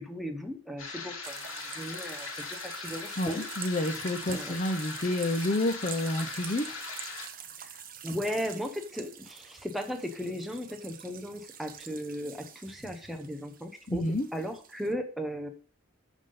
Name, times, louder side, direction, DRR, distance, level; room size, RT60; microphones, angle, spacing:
voice 1, 0.0-3.4 4.3-4.6 7.6-7.8 8.0-14.0 14.3-15.5, equal, ahead, 4 dB, 1.0 m, -36 dB
sound 1, 0.8-7.2, left 4 dB, 75° left, 2.5 m, -40 dB
sound 2, 1.2-14.9, right 8 dB, 40° right, 0.9 m, -46 dB
voice 2, 3.2-6.8 13.9-14.3, left 1 dB, 35° left, 5 dB, 0.6 m, -29 dB
11.0 x 3.7 x 5.5 m, 0.39 s
head